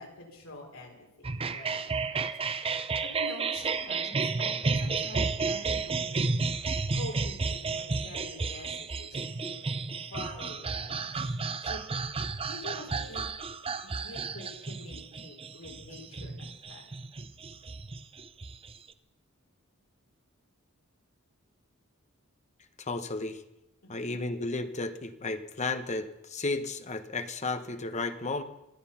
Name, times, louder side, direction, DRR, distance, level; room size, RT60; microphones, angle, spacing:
voice 1, 0.0-6.3 6.9-9.6 10.1-11.3 11.6-11.8 12.5-13.3 13.8-16.9 23.8-24.2, left 2 dB, 75° left, 0 dB, 5.0 m, -46 dB
sound 1, 1.2-18.9, right 4 dB, 25° right, 0.7 m, -32 dB
voice 2, 22.8-23.4 23.9-28.4, left 3 dB, 35° left, 9 dB, 1.1 m, -33 dB
26.5 x 9.6 x 5.7 m, 0.89 s
head